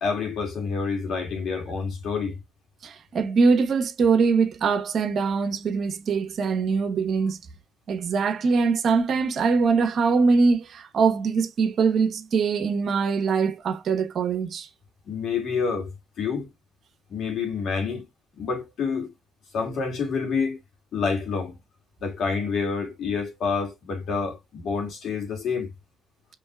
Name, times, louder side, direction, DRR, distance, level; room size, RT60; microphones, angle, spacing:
voice 1, 0.0-2.4 15.1-16.5 17.1-18.0 18.4-19.1 19.5-20.6 20.9-21.6 22.0-25.7, left 5 dB, 70° left, 2.1 m, -28 dB
voice 2, 2.8-7.4 7.9-14.7, right 5 dB, 60° right, 1.1 m, -22 dB
5.4 x 3.2 x 2.3 m
cardioid pair, 90°, 0 cm